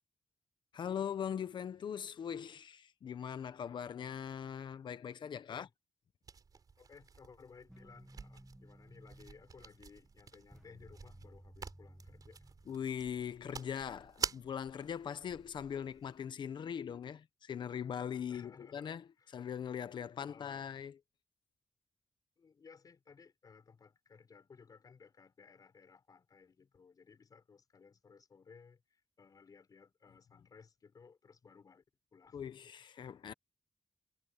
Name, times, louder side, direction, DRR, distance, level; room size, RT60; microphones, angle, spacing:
voice 1, 0.7-5.7 12.7-19.0 19.3-20.9 32.3-33.3, left 8 dB, 70° left, 0.9 m, -41 dB
sound 1, 6.2-16.2, right 5 dB, 50° right, 4.5 m, -48 dB
voice 2, 6.8-12.6 18.3-19.4 20.2-20.7 22.4-31.8 32.1-32.7, left 5 dB, 50° left, 5.3 m, -59 dB
sound 2, 7.7-13.3, right 1 dB, 5° right, 1.6 m, -58 dB
wide cardioid pair, 120°, 8 cm